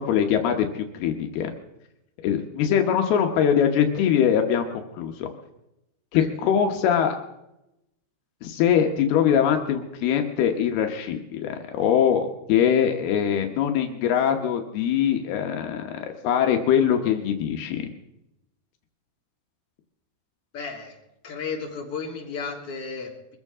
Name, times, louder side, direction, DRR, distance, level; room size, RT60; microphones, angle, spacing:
voice 1, 0.0-1.5 2.2-5.3 6.1-7.2 8.4-17.9, left 8 dB, 85° left, 4 dB, 3.2 m, -22 dB
voice 2, 20.5-21.0 21.2-23.4, left 5 dB, 40° left, -2 dB, 3.9 m, -34 dB
23.5 x 15.0 x 3.7 m, 0.87 s
omnidirectional pair, 4.4 m